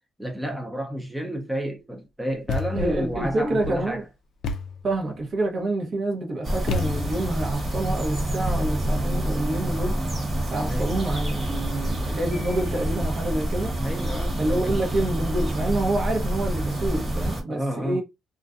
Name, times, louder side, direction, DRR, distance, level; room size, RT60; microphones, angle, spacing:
voice 1, 0.2-4.0 10.7-11.0 13.8-14.8 17.5-18.0, equal, 5° right, 0.6 m, -31 dB
sound 1, 2.3-2.4 2.7-4.1 4.4-5.5 8.3-9.8, left 1 dB, 75° right, 1.2 m, -36 dB
Thump thud, 2.5-3.0 4.4-4.9 6.7-7.3, left 4 dB, 70° left, 0.3 m, -29 dB
voice 2, 2.7-4.0 4.8-10.0 10.5-13.7 14.4-18.0, right 2 dB, 50° right, 0.8 m, -27 dB
sound 2, 6.4-17.4, right 1 dB, 30° right, 1.3 m, -27 dB
2.4 x 2.2 x 2.4 m
cardioid pair, 90°, 0 cm